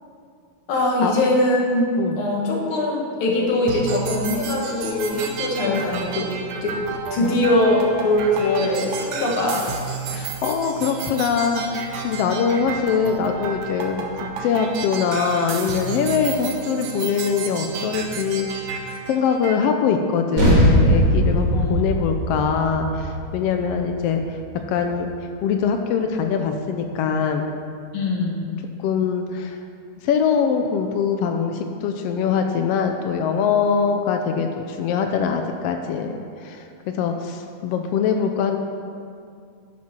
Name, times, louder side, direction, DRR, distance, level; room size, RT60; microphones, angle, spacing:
voice 1, 0.7-1.9 2.2-6.2 6.6-6.8 7.1-9.8 21.5-21.9 27.9-28.4, left 1 dB, 50° left, -2 dB, 2.1 m, -22 dB
sound 1, 3.7-19.7, right 6 dB, 85° right, 2.3 m, -32 dB
voice 2, 10.1-18.5 19.1-25.1 25.4-27.4 28.8-29.6 30.0-38.6, left 6 dB, 85° left, 5 dB, 1.4 m, -23 dB
sound 2, 20.4-25.2, equal, 40° right, 1.2 m, -20 dB
12.0 x 7.4 x 4.4 m, 2.4 s
omnidirectional pair, 3.4 m